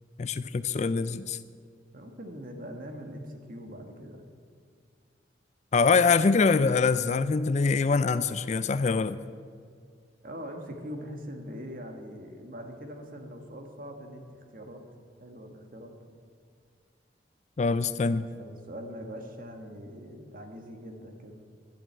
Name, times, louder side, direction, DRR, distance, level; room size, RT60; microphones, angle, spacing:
voice 1, 0.2-1.4 5.7-9.2 17.6-18.3, left 4 dB, 40° left, 14 dB, 0.4 m, -24 dB
voice 2, 1.9-4.3 10.2-14.8 15.2-15.9 18.4-21.4, equal, 50° right, 3 dB, 1.7 m, -42 dB
11.5 x 7.8 x 8.8 m, 2.1 s
head